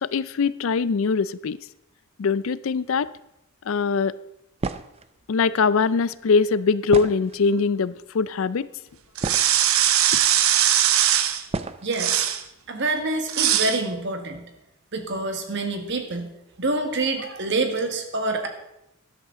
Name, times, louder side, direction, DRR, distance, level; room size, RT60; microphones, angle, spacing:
voice 1, 0.0-1.6 2.2-3.1 3.7-4.1 5.3-8.7, left 5 dB, 65° left, 17 dB, 0.4 m, -22 dB
sound 1, 4.6-5.1 6.9-7.6 8.5-8.6 8.9-9.7 10.7-10.8 11.5-11.9, right 3 dB, 30° right, 0.4 m, -31 dB
sound 2, 9.2-11.4 11.9-12.4 13.3-13.8, right 11 dB, 75° right, 0.8 m, -20 dB
voice 2, 11.8-12.3 12.7-14.5 14.9-16.3 16.6-18.5, right 2 dB, 55° right, 5 dB, 1.6 m, -26 dB
13.5 x 11.0 x 3.7 m, 0.85 s
head